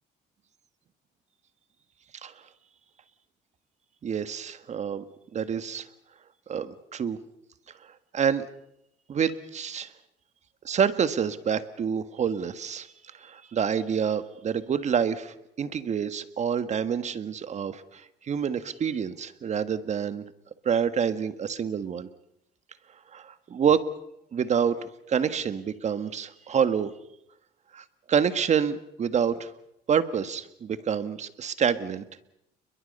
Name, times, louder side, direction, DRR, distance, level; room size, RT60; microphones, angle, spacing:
voice 1, 4.0-5.0 5.3-5.9 6.5-7.2 8.1-8.5 9.1-9.9 10.6-20.2 20.6-22.1 23.1-23.8 24.3-26.9 27.7-29.5 29.9-32.0, right 7 dB, 45° right, 12 dB, 1.5 m, -27 dB
30.0 x 22.0 x 5.4 m, 0.78 s
cardioid pair, 110°, 17 cm